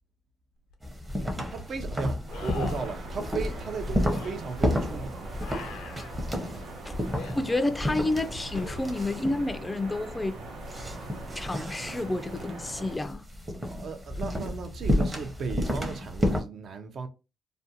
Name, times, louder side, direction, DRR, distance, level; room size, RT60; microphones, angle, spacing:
sound 1, 0.7-0.8 2.3-3.0 4.1-4.3 5.4-6.1 7.1-7.4 8.5-9.2 12.4-12.5, left 5 dB, 90° left, 0.5 m, -43 dB
sound 2, 0.8-16.4, left 1 dB, 20° right, 0.7 m, -31 dB
voice 1, 1.5-5.3 6.5-6.7 13.7-17.1, right 5 dB, 60° right, 0.5 m, -36 dB
sound 3, 2.3-13.0, right 2 dB, 90° right, 0.9 m, -41 dB
voice 2, 7.3-10.4 11.4-13.3, left 2 dB, 15° left, 0.3 m, -30 dB
2.5 x 2.2 x 2.7 m
cardioid pair, 90°, 0 cm